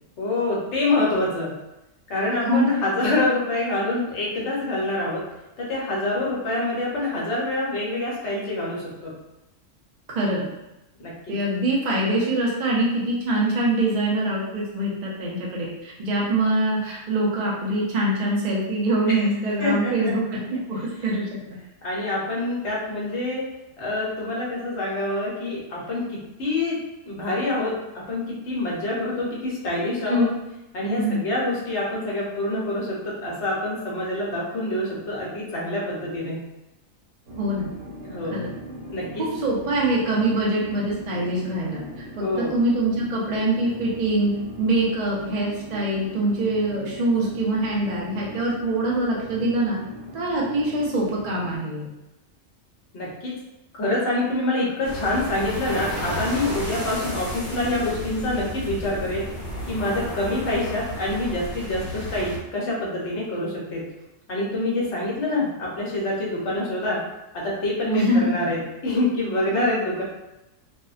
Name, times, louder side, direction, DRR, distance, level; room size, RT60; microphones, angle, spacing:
voice 1, 0.2-1.5 2.1-5.2 5.6-9.1 11.0-11.3 19.1-19.3 19.6-20.1 21.8-23.5 23.8-26.8 27.1-27.7 28.1-30.3 30.7-36.4 38.0-38.4 38.9-39.2 42.2-42.5 52.9-53.3 53.7-59.2 59.7-63.9 64.3-67.0 67.3-70.0, left 2 dB, 65° left, -4 dB, 1.0 m, -26 dB
voice 2, 10.1-10.5 11.3-21.4 30.1-30.3 30.9-31.2 37.3-37.7 38.3-38.5 39.2-41.8 42.2-44.3 44.6-49.8 50.1-51.9 67.9-68.3, right 1 dB, 60° right, -4 dB, 0.4 m, -24 dB
sound 1, 37.3-51.6, left 1 dB, 75° right, 1.2 m, -39 dB
sound 2, 54.8-62.4, left 1 dB, 45° left, 1.0 m, -32 dB
2.5 x 2.1 x 2.4 m, 0.93 s
omnidirectional pair, 1.3 m